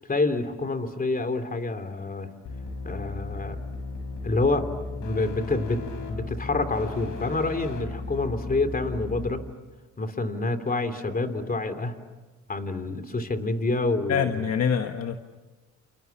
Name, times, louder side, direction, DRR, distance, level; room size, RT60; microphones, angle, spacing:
voice 1, 0.1-2.3 2.8-3.6 4.2-4.7 5.0-5.8 6.1-9.4 10.0-11.9 12.5-14.4, left 2 dB, 30° left, 8 dB, 3.0 m, -27 dB
sound 1, 2.4-9.3, left 3 dB, 85° left, 5.7 m, -35 dB
voice 2, 14.1-15.2, left 7 dB, 55° left, 6 dB, 1.4 m, -25 dB
29.5 x 28.5 x 7.1 m, 1.2 s
cardioid pair, 90°, 30 cm